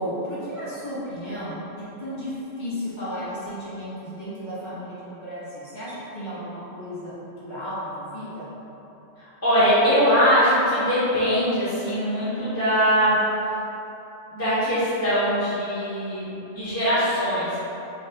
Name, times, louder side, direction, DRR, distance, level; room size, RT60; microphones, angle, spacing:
voice 1, 0.0-8.5, equal, 35° left, -12 dB, 1.6 m, -34 dB
voice 2, 9.2-13.1 14.3-17.6, equal, 10° left, -13 dB, 1.1 m, -22 dB
5.3 x 2.6 x 3.7 m, 3.0 s
omnidirectional pair, 1.3 m